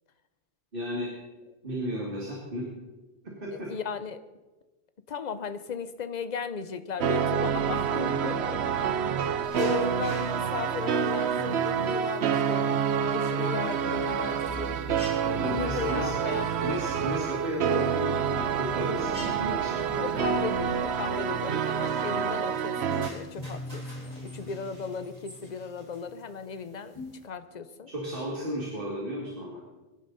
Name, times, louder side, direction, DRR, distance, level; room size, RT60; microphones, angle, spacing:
voice 1, 0.7-1.1 1.6-2.7 3.2-3.7 7.9-8.0 15.2-16.1 16.6-19.8 27.9-29.6, equal, 55° right, -2 dB, 2.6 m, -34 dB
voice 2, 3.5-4.2 5.1-9.0 9.5-12.7 13.1-14.8 15.3-16.7 20.0-27.0 27.2-27.9, left 6 dB, 45° left, 12 dB, 0.9 m, -36 dB
sound 1, 7.0-23.1, right 7 dB, 75° right, 1.0 m, -28 dB
sound 2, 9.4-27.3, equal, 35° right, 4.0 m, -50 dB
sound 3, 11.3-26.6 27.0-27.1, equal, 30° left, 4.2 m, -44 dB
23.5 x 11.0 x 4.1 m, 1.2 s
omnidirectional pair, 1.1 m